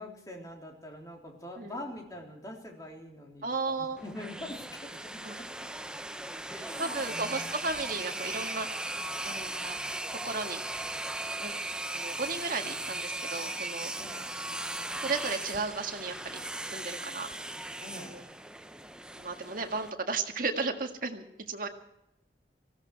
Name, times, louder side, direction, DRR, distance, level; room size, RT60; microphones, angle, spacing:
voice 1, 0.0-5.5 6.5-7.5 14.0-14.3 17.8-18.2 21.6-21.7, left 1 dB, 20° left, 0 dB, 3.3 m, -44 dB
voice 2, 3.4-4.0 5.2-5.4 6.8-8.7 9.3-9.8 10.2-10.6 11.4-13.9 15.0-16.4 16.7-17.3 18.0-18.2 19.2-21.7, right 4 dB, 50° right, 4 dB, 1.8 m, -34 dB
sound 1, 4.0-19.9, right 2 dB, 5° right, 0.6 m, -38 dB
19.5 x 16.0 x 4.7 m, 0.86 s
head